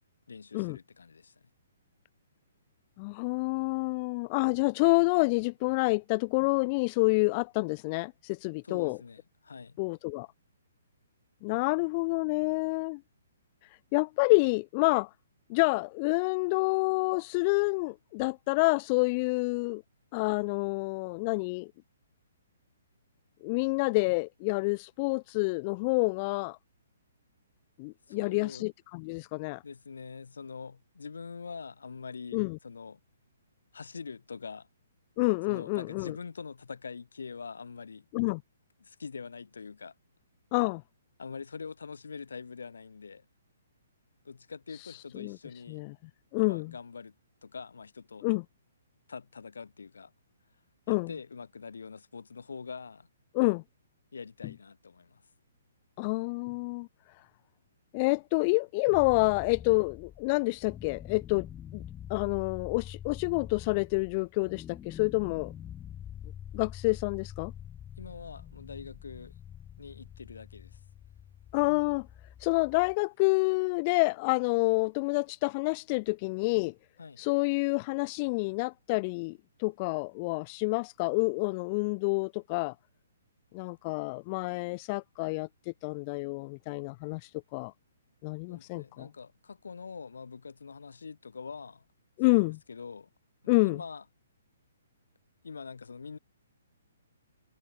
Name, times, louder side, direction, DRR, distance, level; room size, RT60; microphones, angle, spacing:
voice 1, 0.3-1.5 8.6-9.8 28.1-28.7 29.6-33.0 33.7-34.7 35.5-38.1 38.8-39.9 41.2-43.3 44.2-45.8 46.4-47.1 47.4-48.3 49.1-50.1 50.9-53.1 54.1-55.2 68.0-69.3 69.8-70.8 77.0-77.2 88.5-91.8 92.3-93.1 93.4-94.0 95.4-96.2, left 5 dB, 70° left, 3.9 m, -44 dB
voice 2, 3.0-9.0 9.8-10.3 11.4-13.0 13.9-15.1 15.5-19.8 20.1-21.7 23.4-26.6 27.8-29.6 32.3-32.6 35.2-36.1 38.1-38.4 40.5-40.8 45.2-45.4 45.7-45.9 46.3-46.7 48.2-48.4 50.9-51.1 53.3-53.6 56.0-56.9 57.9-61.5 61.7-61.8 62.1-65.5 66.5-67.5 71.5-72.1 72.4-76.7 77.2-82.7 83.5-85.5 85.8-87.7 88.2-89.1 92.2-92.6 93.5-93.8, left 28 dB, 35° left, 1.0 m, -28 dB
sound 1, 58.9-72.9, left 10 dB, 15° left, 1.6 m, -45 dB
figure-of-eight pair, 130°, 0 cm